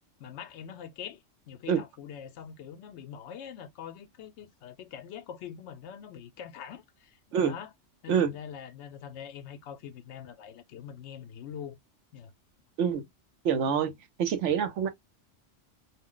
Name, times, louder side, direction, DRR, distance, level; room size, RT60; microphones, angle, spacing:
voice 1, 0.2-7.7 8.0-11.8 12.1-12.3, left 8 dB, 70° left, 0.9 m, -44 dB
voice 2, 13.4-13.9 14.2-14.9, right 7 dB, 75° right, 1.0 m, -26 dB
2.4 x 2.1 x 3.7 m
omnidirectional pair, 1.3 m